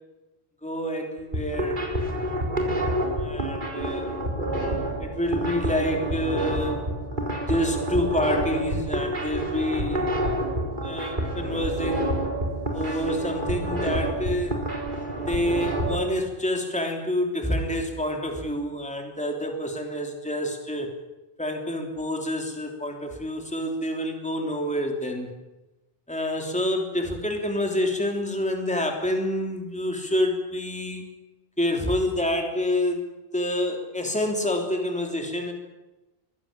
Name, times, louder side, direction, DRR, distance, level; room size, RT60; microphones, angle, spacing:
voice 1, 0.6-1.9 3.2-4.1 5.0-6.8 7.5-10.1 10.8-12.2 12.7-14.6 15.3-20.9 21.4-25.3 26.1-31.0 31.6-33.0 33.3-35.5, left 1 dB, 5° left, 2 dB, 3.3 m, -27 dB
sound 1, 1.2-16.0, right 1 dB, 50° right, 4.4 m, -28 dB
23.5 x 16.0 x 8.9 m, 1.1 s
omnidirectional pair, 1.1 m